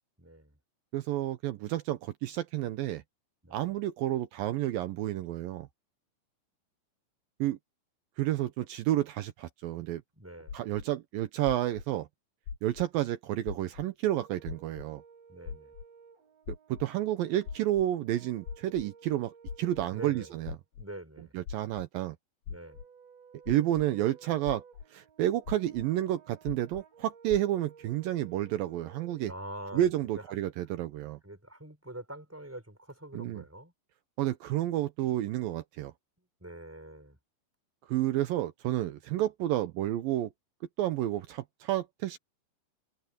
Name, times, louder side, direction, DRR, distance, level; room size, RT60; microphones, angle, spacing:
voice 1, 0.2-0.6 3.4-3.7 10.2-10.6 15.3-15.7 19.8-20.3 20.7-21.3 22.5-22.8 29.2-29.9 30.3-30.4 31.2-33.7 36.4-37.2, right 1 dB, 5° right, 4.4 m, -45 dB
voice 2, 0.9-3.0 3.5-5.7 7.4-7.6 8.2-10.0 10.5-12.1 12.6-15.0 16.5-20.5 21.3-22.2 23.5-24.6 24.9-29.3 29.7-31.2 33.1-33.4 34.2-35.9 37.9-40.3 40.8-42.2, right 13 dB, 85° right, 2.0 m, -30 dB
sound 1, 10.5-10.8 11.5-11.8 12.5-12.8 13.5-13.8 14.5-14.8 15.5-15.8 16.5-16.8 17.5-17.8 18.5-18.8 19.5-19.8 20.5-20.8 21.5-21.8 22.5-22.8 23.5-23.8 24.5-24.8 25.5-25.8 26.5-26.8 27.3-27.4, left 6 dB, 55° left, 3.5 m, -40 dB
Brass instrument, 14.1-20.6 22.7-29.3, right 6 dB, 55° right, 6.0 m, -56 dB
omnidirectional pair, 5.4 m